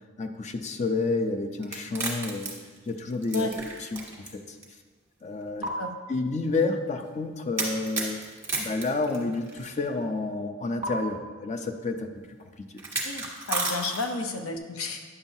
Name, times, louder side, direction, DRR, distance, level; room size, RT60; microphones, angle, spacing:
voice 1, 0.2-2.5 2.9-3.5 3.9-4.6 5.2-5.7 6.1-8.2 8.6-12.1, left 3 dB, 35° left, 7 dB, 0.4 m, -30 dB
sound 1, 1.6-4.3 4.6-4.7 5.6-5.7 7.6-9.7 10.8-10.9 12.8-14.3, right 3 dB, 10° right, 1.4 m, -32 dB
voice 2, 5.6-5.9 13.0-15.0, left 3 dB, 80° left, 6 dB, 0.7 m, -32 dB
9.6 x 7.1 x 2.7 m, 1.4 s
head